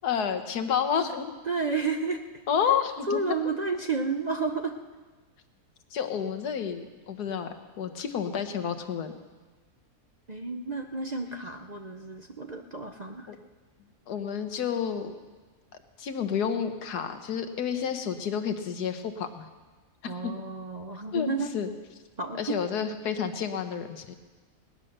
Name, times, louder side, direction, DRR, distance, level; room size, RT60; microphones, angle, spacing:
voice 1, 0.0-1.3 2.5-3.2 5.9-9.1 13.3-13.4 14.1-15.2 16.0-19.4 20.2-20.3 21.1-21.3 21.5-21.7 22.4-24.1, left 7 dB, 85° left, 8 dB, 1.6 m, -30 dB
voice 2, 1.5-2.2 3.1-4.7 10.3-13.3 20.1-21.5 22.2-22.5, right 4 dB, 40° right, 4 dB, 0.6 m, -31 dB
19.0 x 9.8 x 6.6 m, 1.3 s
omnidirectional pair, 1.6 m